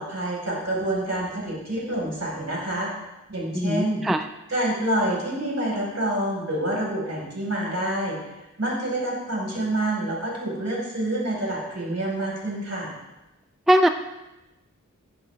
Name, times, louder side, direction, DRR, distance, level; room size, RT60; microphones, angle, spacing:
voice 1, 0.0-2.9 3.3-4.0 4.5-8.2 8.6-12.9, right 1 dB, 55° right, -4 dB, 4.7 m, -27 dB
voice 2, 3.5-4.3 13.7-13.9, equal, ahead, 8 dB, 0.4 m, -20 dB
16.0 x 10.5 x 3.4 m, 1.0 s
wide cardioid pair, 60°, 31 cm